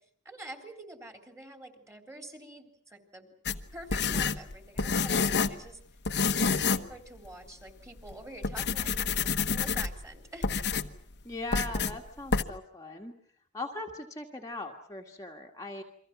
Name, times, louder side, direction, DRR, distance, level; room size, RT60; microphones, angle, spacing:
voice 1, 0.3-3.3 3.7-5.8 6.4-10.5, right 1 dB, 15° right, 5 dB, 3.6 m, -47 dB
sound 1, 3.5-5.6 6.1-6.9 7.3-7.4 8.0-8.1 8.4-10.0 10.4-11.0 11.5-12.0 12.3-12.4, left 5 dB, 50° left, 1.2 m, -28 dB
voice 2, 11.2-13.1 13.5-15.8, left 2 dB, 15° left, 0 dB, 1.7 m, -39 dB
29.5 x 24.0 x 6.1 m, 0.62 s
head